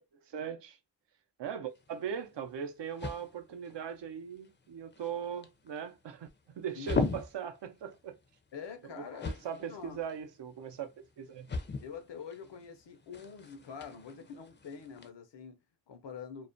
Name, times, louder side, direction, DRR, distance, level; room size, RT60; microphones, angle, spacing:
voice 1, 0.2-0.8 1.4-6.3 6.5-8.2 9.0-10.9 11.2-11.5, right 8 dB, 80° right, 0.6 m, -39 dB
sound 1, 1.7-15.1, left 4 dB, 30° left, 0.4 m, -41 dB
voice 2, 8.5-10.0 11.8-16.5, left 6 dB, 80° left, 0.6 m, -46 dB
2.3 x 2.1 x 2.5 m
wide cardioid pair, 65°, 42 cm